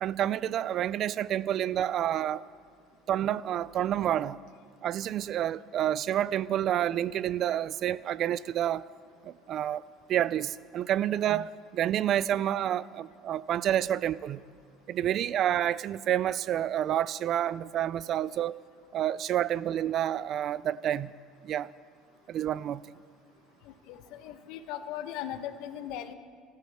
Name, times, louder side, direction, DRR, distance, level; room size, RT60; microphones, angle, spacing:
voice 1, 0.0-2.4 3.1-4.4 4.8-8.9 9.2-9.8 10.1-14.4 14.9-18.6 18.9-21.1 21.4-21.7 22.3-22.8, right 11 dB, 45° right, 0.3 m, -29 dB
voice 2, 23.7-26.1, left 10 dB, 70° left, 1.1 m, -39 dB
28.0 x 13.5 x 3.5 m
cardioid pair, 135°, 0 cm